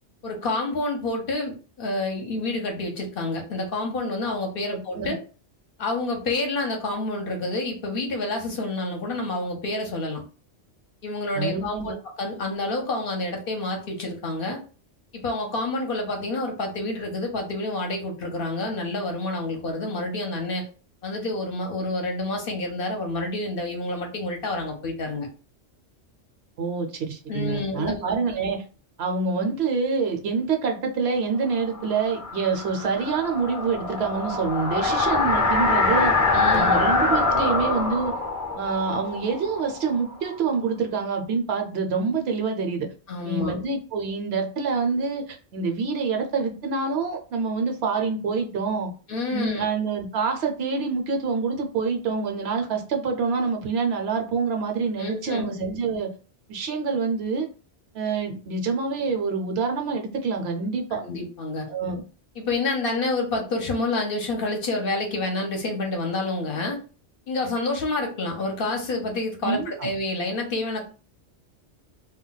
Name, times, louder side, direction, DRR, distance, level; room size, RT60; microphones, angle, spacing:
voice 1, 0.2-5.2 5.8-10.2 11.0-14.6 15.1-20.6 21.0-25.3 27.3-28.0 35.0-35.2 36.3-36.8 43.1-43.6 49.1-49.6 55.0-55.5 60.9-61.7 62.4-66.8 67.3-70.8, left 2 dB, 60° left, 2 dB, 0.8 m, -28 dB
voice 2, 11.3-12.0 26.6-28.6 29.0-36.1 36.5-38.1 38.6-42.9 43.2-48.9 49.3-56.1 56.5-57.5 57.9-61.0 61.7-62.0 69.4-69.9, right 4 dB, 70° right, 3 dB, 0.8 m, -26 dB
sound 1, 31.6-40.3, left 3 dB, 20° left, 0.5 m, -24 dB
2.2 x 2.2 x 3.8 m, 0.37 s
omnidirectional pair, 1.2 m